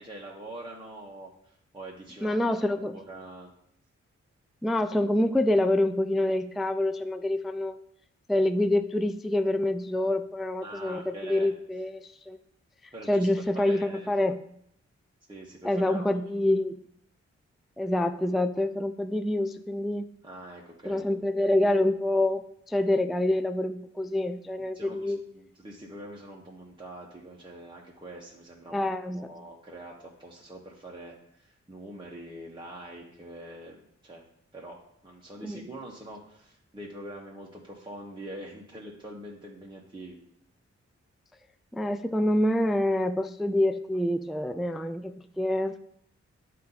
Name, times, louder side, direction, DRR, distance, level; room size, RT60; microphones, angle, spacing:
voice 1, 0.0-2.4 2.8-3.5 10.6-11.5 12.9-13.3 13.5-14.1 15.3-16.1 20.2-21.0 24.7-34.2 34.5-34.8 35.0-40.2, right 1 dB, 15° right, -3 dB, 1.2 m, -44 dB
voice 2, 2.2-3.0 4.6-7.8 8.3-12.4 13.1-14.4 15.6-16.8 17.8-20.1 20.9-25.2 28.7-29.3 35.4-35.6 41.7-45.8, left 1 dB, ahead, 10 dB, 0.3 m, -26 dB
8.4 x 2.8 x 4.0 m, 0.72 s
cardioid pair, 50°, 29 cm